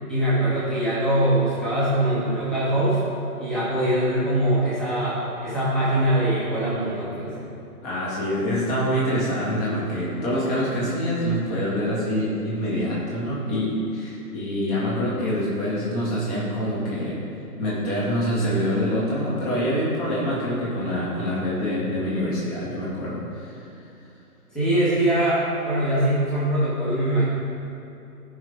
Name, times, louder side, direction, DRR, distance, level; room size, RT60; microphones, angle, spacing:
voice 1, 0.1-3.0 3.4-7.3 24.5-27.2, right 1 dB, ahead, -10 dB, 1.2 m, -22 dB
voice 2, 7.8-17.2 17.6-23.6, equal, 25° left, -6 dB, 2.2 m, -25 dB
15.0 x 5.7 x 3.6 m, 2.8 s
hypercardioid pair, 160°, 46 cm